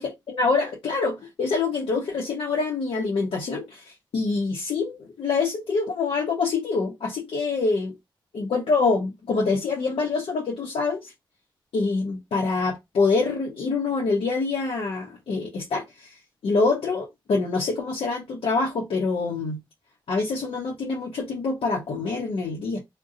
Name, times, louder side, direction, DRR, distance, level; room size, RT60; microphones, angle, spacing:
voice 1, 0.0-7.9 8.3-11.1 11.7-16.1 16.4-19.6 20.1-22.8, left 4 dB, 85° left, 0.8 m, -25 dB
2.6 x 2.2 x 3.6 m
cardioid pair, 55°, 9 cm